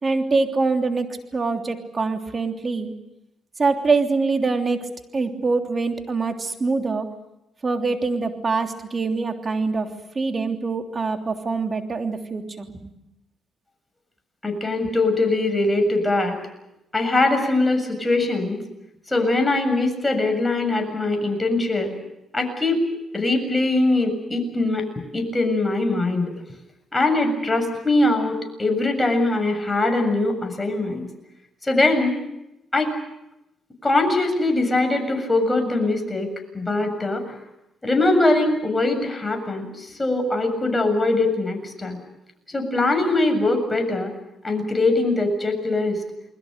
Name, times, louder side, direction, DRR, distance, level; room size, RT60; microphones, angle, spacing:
voice 1, 0.0-2.9 3.6-7.1 7.6-12.9, right 4 dB, 40° right, 4 dB, 3.2 m, -24 dB
voice 2, 14.4-16.4 16.9-18.6 19.1-21.9 22.3-22.8 23.1-24.9 25.1-26.3 26.9-31.0 31.6-32.2 32.7-32.9 33.8-36.3 36.5-37.2 37.8-42.0 42.5-44.1 44.4-46.0, left 2 dB, 20° left, 5 dB, 7.3 m, -22 dB
30.0 x 21.5 x 6.7 m, 0.87 s
supercardioid pair, 65°, 0 cm